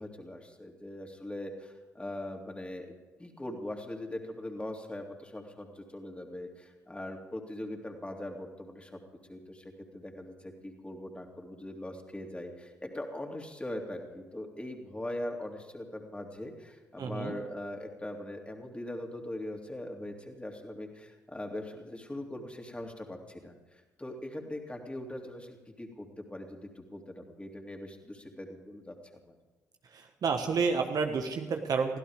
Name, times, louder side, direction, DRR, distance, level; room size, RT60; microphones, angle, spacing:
voice 1, 0.0-2.9 3.2-9.0 9.3-9.6 9.9-23.5 24.0-29.3, left 1 dB, 15° left, 2 dB, 3.2 m, -41 dB
voice 2, 17.0-17.4 29.9-32.0, right 5 dB, 45° right, 5 dB, 1.4 m, -30 dB
23.0 x 16.0 x 3.7 m, 1.2 s
figure-of-eight pair, 45°, 9 cm